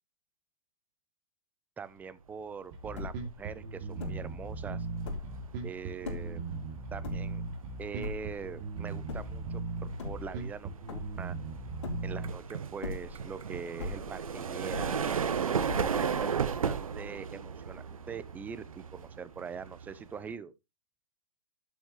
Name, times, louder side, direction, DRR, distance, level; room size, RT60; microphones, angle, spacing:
voice 1, 1.8-4.9 5.6-6.4 6.9-7.4 7.8-11.4 12.0-15.2 15.8-20.5, right 6 dB, 10° right, 0.5 m, -43 dB
sound 1, 2.5-2.6 2.8-3.4 4.0-4.4 4.9-5.5 6.0-6.4 7.0-7.6 8.0-8.5 9.1-9.5 9.9-10.6 10.9-11.4 11.8-12.4 12.7-13.4 13.8-14.3 14.7-15.3 15.7-16.2, left 3 dB, 50° left, 4.1 m, -40 dB
Bass guitar, 2.7-12.3, right 3 dB, 35° right, 2.7 m, -38 dB
sound 2, 2.9-3.2 3.6-20.3, right 7 dB, 65° right, 1.1 m, -36 dB
11.5 x 7.1 x 3.2 m
figure-of-eight pair, 120°, 19 cm